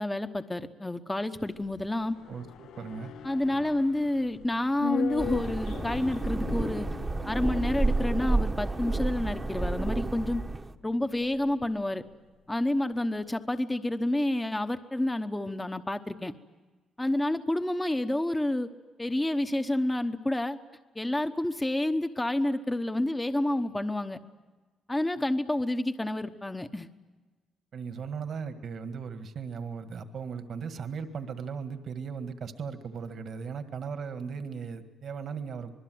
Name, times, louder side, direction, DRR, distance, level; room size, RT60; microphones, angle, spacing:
voice 1, 0.0-2.2 3.2-6.9 7.3-10.4 10.8-12.0 12.5-16.3 17.0-18.7 19.0-20.6 20.9-24.2 24.9-26.9, left 1 dB, 15° left, 8 dB, 1.0 m, -29 dB
sound 1, 1.4-11.9 12.1-12.2, left 9 dB, 75° left, 0.7 m, -41 dB
voice 2, 2.3-3.1 3.5-3.6 27.7-35.7, right 6 dB, 60° right, 9 dB, 1.8 m, -37 dB
sound 2, 5.2-10.7, right 2 dB, 20° right, 1.1 m, -30 dB
26.5 x 21.0 x 7.9 m, 1.3 s
cardioid pair, 90°, 0 cm